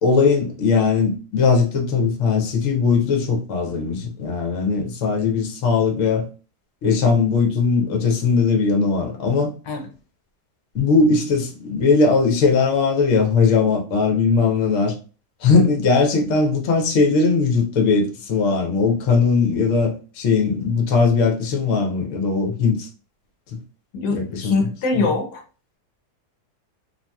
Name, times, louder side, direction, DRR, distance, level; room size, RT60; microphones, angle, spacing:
voice 1, 0.0-6.3 6.8-9.5 10.7-14.9 15.4-22.9 23.5-23.6 24.1-24.6, left 4 dB, 60° left, 1.0 m, -19 dB
voice 2, 23.9-25.4, left 3 dB, 80° left, 1.1 m, -23 dB
2.8 x 2.7 x 2.2 m
omnidirectional pair, 1.7 m